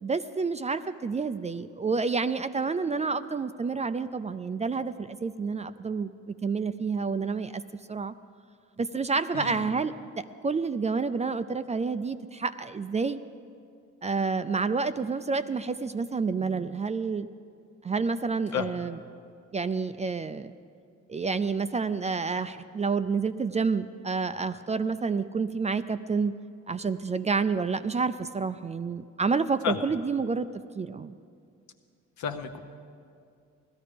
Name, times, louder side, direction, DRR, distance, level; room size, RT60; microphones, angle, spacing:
voice 1, 0.0-7.6 7.9-8.1 8.8-13.2 14.0-17.3 17.8-19.0 19.5-20.5 21.1-26.4 26.7-30.5 30.7-31.2, right 4 dB, 25° right, 12 dB, 0.4 m, -29 dB
voice 2, 9.3-9.6 18.5-18.7 29.6-29.8 32.2-32.6, left 8 dB, 70° left, 6 dB, 1.1 m, -31 dB
16.5 x 13.0 x 5.1 m, 2.3 s
cardioid pair, 90°, 30 cm